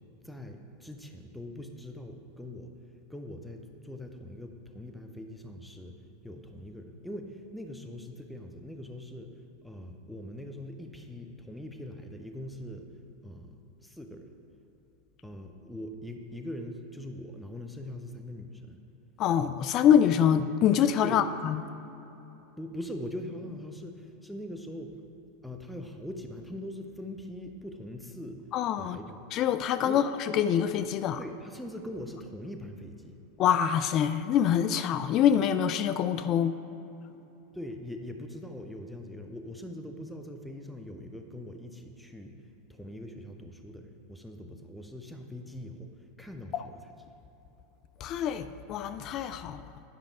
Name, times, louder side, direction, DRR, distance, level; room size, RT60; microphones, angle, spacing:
voice 1, 0.2-2.7 3.1-6.0 6.2-12.9 13.2-14.3 15.2-18.8 21.0-21.2 22.6-25.0 25.4-28.4 28.8-29.2 29.8-30.0 31.2-33.2 37.5-46.9, left 1 dB, ahead, 4 dB, 0.8 m, -42 dB
voice 2, 19.2-21.6 28.5-29.0 29.3-30.0 30.3-31.2 33.4-36.5 48.0-49.7, left 9 dB, 45° left, 11 dB, 0.3 m, -25 dB
10.5 x 5.2 x 4.8 m, 3.0 s
hypercardioid pair, 85°, 0 cm